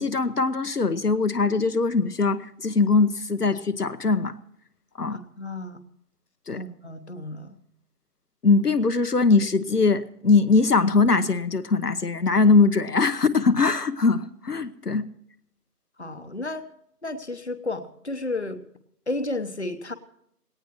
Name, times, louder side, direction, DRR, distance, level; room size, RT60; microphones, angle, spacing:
voice 1, 0.0-4.3 5.0-5.2 6.5-6.6 8.4-15.1, left 4 dB, 70° left, 11 dB, 1.0 m, -21 dB
voice 2, 5.1-5.8 6.5-7.6 14.5-14.6 16.0-16.6 17.0-18.6 19.1-19.9, left 2 dB, 45° left, 10 dB, 1.0 m, -32 dB
19.5 x 18.0 x 3.0 m, 0.70 s
figure-of-eight pair, 180°, 48 cm